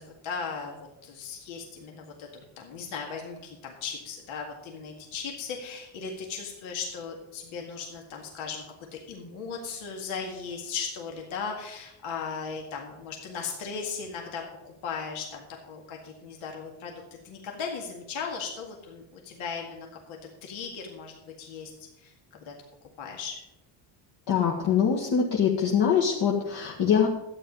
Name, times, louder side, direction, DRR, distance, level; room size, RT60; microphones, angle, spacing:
voice 1, 0.0-8.6 8.9-21.7 22.0-22.5 23.0-23.4, left 5 dB, 75° left, 1 dB, 2.0 m, -37 dB
voice 2, 24.3-27.1, left 7 dB, 55° left, -3 dB, 1.7 m, -23 dB
12.0 x 9.1 x 5.3 m, 0.93 s
cardioid pair, 130°, 48 cm